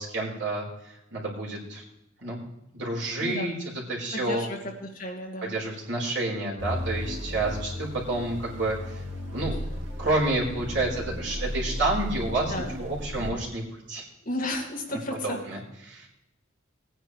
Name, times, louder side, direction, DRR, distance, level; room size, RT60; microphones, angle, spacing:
voice 1, 0.0-1.8 2.2-2.4 2.7-4.5 5.4-9.6 10.0-14.0 14.9-16.1, right 2 dB, 60° right, -4 dB, 4.1 m, -30 dB
voice 2, 4.1-5.5 12.5-12.7 14.3-15.4, left 1 dB, 40° left, 0 dB, 2.1 m, -33 dB
sound 1, 6.6-13.3, left 1 dB, 80° right, 2.3 m, -35 dB
18.5 x 9.8 x 3.2 m, 0.84 s
head